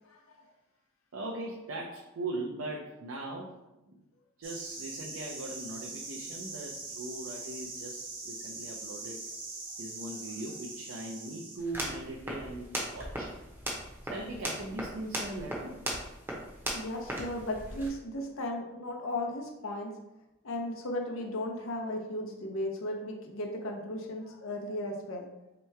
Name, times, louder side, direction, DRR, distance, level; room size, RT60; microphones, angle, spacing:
voice 1, 1.1-3.6 3.9-4.0 4.4-9.2 9.8-13.3 14.0-15.8 18.0-18.1, right 2 dB, 80° right, -1 dB, 0.6 m, -40 dB
sound 1, 4.4-11.6, right 3 dB, 45° right, 0.9 m, -42 dB
sound 2, 11.6-17.9, right 1 dB, 10° right, 0.7 m, -38 dB
voice 2, 16.7-19.9 20.4-25.3, left 1 dB, 75° left, 1 dB, 0.7 m, -35 dB
3.3 x 3.0 x 4.5 m, 0.97 s
head